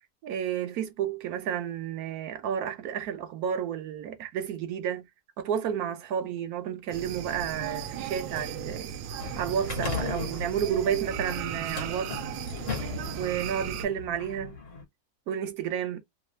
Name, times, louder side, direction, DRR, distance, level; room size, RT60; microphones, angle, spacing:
voice 1, 0.2-5.0 5.4-8.9 9.4-12.2 13.2-14.6 15.3-16.0, right 9 dB, 65° right, 1.0 m, -31 dB
sound 1, 6.9-13.9, right 7 dB, 90° right, 1.3 m, -36 dB
sound 2, 9.2-14.8, left 5 dB, 50° left, 1.2 m, -38 dB
3.2 x 2.3 x 3.1 m
omnidirectional pair, 2.0 m